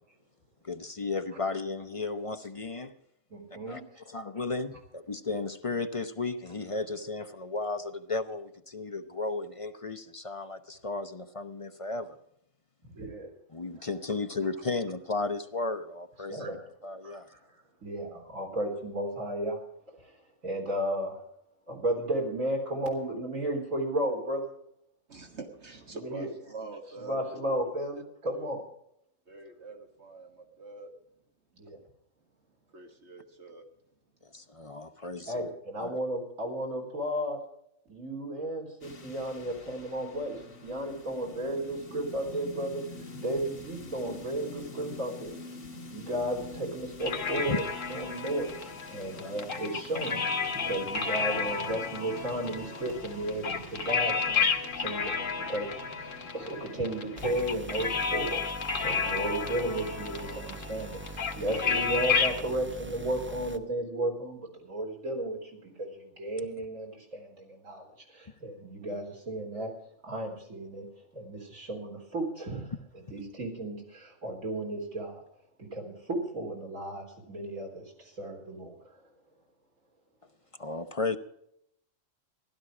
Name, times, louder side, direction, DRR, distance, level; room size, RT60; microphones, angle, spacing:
voice 1, 0.6-2.9 3.7-3.8 4.1-12.2 13.5-16.6 16.8-17.3 34.3-35.5 35.8-35.9 47.5-47.6 80.6-81.2, left 3 dB, 35° left, 8 dB, 0.6 m, -34 dB
voice 2, 3.3-3.8 12.9-13.3 16.3-16.6 17.0-17.2 17.8-19.6 20.0-20.1 20.4-21.2 21.7-24.5 25.9-26.3 27.0-28.6 31.5-31.8 35.3-37.4 37.9-42.8 43.2-45.4 45.9-50.2 50.5-54.5 54.8-58.4 58.8-67.9 68.1-69.7 70.0-70.9 71.1-72.7 73.1-75.2 75.6-78.8, right 1 dB, 90° right, 0 dB, 4.2 m, -34 dB
voice 3, 25.1-27.4 28.4-28.5 29.3-30.9 32.7-33.6 35.0-35.1, right 3 dB, 55° right, 4 dB, 1.8 m, -45 dB
sound 1, 38.8-57.4, left 2 dB, 60° left, 2.5 m, -46 dB
sound 2, 47.0-62.4, left 5 dB, 75° left, 1.8 m, -32 dB
sound 3, 57.2-63.6, right 2 dB, 10° right, 0.6 m, -43 dB
16.0 x 12.5 x 4.9 m, 0.74 s
omnidirectional pair, 1.4 m